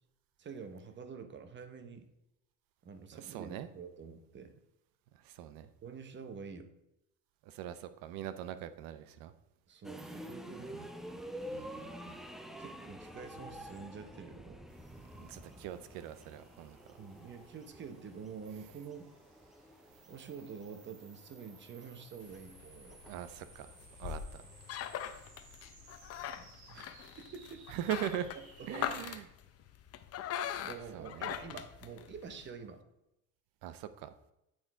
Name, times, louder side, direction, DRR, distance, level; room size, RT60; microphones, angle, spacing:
voice 1, 0.4-2.1 2.8-4.5 5.8-6.7 9.7-10.8 12.6-14.6 17.0-19.1 20.1-23.0 24.4-24.5 26.4-27.6 28.6-28.9 30.6-32.8, right 5 dB, 35° right, 8 dB, 0.8 m, -47 dB
voice 2, 3.1-3.7 5.2-5.7 7.5-9.3 10.8-10.9 11.5-12.2 15.2-16.8 23.0-23.7 24.0-24.4 27.7-28.3 28.7-29.2 30.9-31.3 33.6-34.1, right 11 dB, 75° right, 12 dB, 0.7 m, -41 dB
sound 1, 9.8-24.9, equal, ahead, 0.4 m, -49 dB
sound 2, 14.7-29.2, right 3 dB, 55° right, 2.1 m, -60 dB
sound 3, 22.2-32.5, left 10 dB, 45° left, 0.6 m, -42 dB
8.7 x 3.8 x 4.6 m, 0.87 s
cardioid pair, 125°, 34 cm